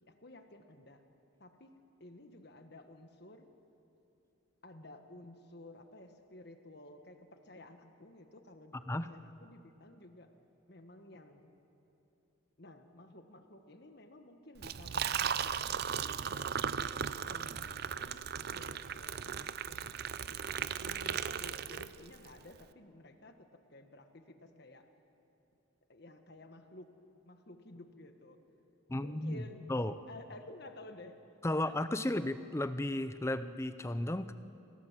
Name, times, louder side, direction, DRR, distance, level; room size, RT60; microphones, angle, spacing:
voice 1, 0.0-1.0 1.4-3.5 4.6-10.3 10.7-11.6 12.6-16.9 17.2-24.9 25.9-27.0 27.2-28.4 29.0-29.6 30.1-31.3 32.0-32.1, left 1 dB, 50° left, 6 dB, 1.5 m, -54 dB
Liquid, 14.6-22.3, right 7 dB, 50° right, 0.5 m, -37 dB
voice 2, 28.9-29.4 29.7-30.0 31.4-34.3, left 1 dB, 15° left, 12 dB, 0.5 m, -34 dB
26.5 x 16.0 x 7.4 m, 2.9 s
head